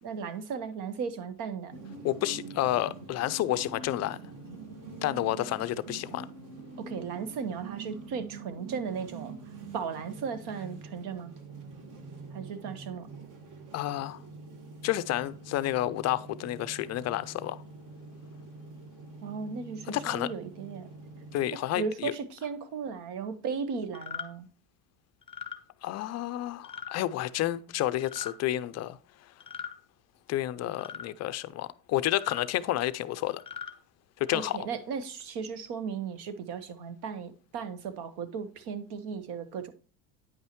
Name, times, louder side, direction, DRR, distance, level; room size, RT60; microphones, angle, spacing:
voice 1, 0.0-1.7 6.8-9.3 9.7-11.3 12.3-13.1 19.2-20.9 21.7-24.5 34.3-39.7, right 6 dB, 60° right, 1.2 m, -36 dB
sound 1, 1.7-21.4, right 3 dB, 45° right, 1.6 m, -45 dB
voice 2, 2.0-4.2 5.0-6.3 13.7-14.2 14.8-17.6 19.9-20.3 21.3-22.1 25.8-29.0 30.3-33.4 34.2-34.7, left 14 dB, 40° left, 0.4 m, -30 dB
sound 2, 23.9-24.3 25.2-25.6 26.6-26.9 28.0-28.3 29.4-29.8 30.8-31.1 32.1-32.5 33.3-33.7, left 7 dB, 10° left, 1.0 m, -39 dB
9.3 x 5.5 x 3.0 m
supercardioid pair, 120°, 45 cm